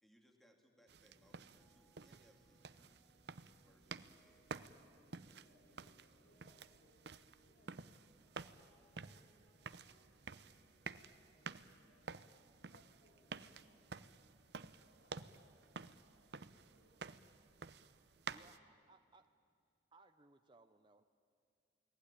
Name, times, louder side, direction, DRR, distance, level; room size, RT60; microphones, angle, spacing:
voice 1, 0.0-3.1 3.6-5.1, equal, ahead, 3 dB, 2.5 m, -72 dB
sound 1, 0.9-18.6, right 5 dB, 65° right, 0.8 m, -52 dB
sound 2, 1.1-14.8, equal, 25° left, 1.1 m, -75 dB
voice 2, 5.1-12.1 12.6-18.0, left 1 dB, 75° left, -1 dB, 4.6 m, -75 dB
voice 3, 18.3-19.3 19.9-21.0, right 2 dB, 25° right, 7 dB, 0.7 m, -65 dB
29.0 x 19.0 x 10.0 m, 2.3 s
head